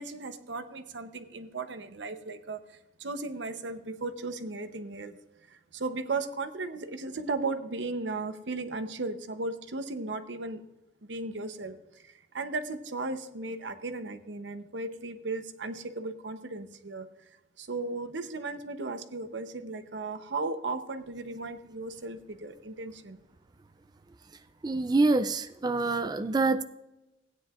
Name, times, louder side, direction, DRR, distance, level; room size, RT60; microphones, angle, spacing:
voice 1, 0.0-2.6 3.0-5.1 5.5-10.6 11.0-17.1 17.6-23.2, right 3 dB, 85° right, 9 dB, 0.8 m, -36 dB
voice 2, 24.6-26.6, right 3 dB, 25° right, 10 dB, 0.4 m, -26 dB
16.5 x 9.5 x 2.5 m, 0.95 s
head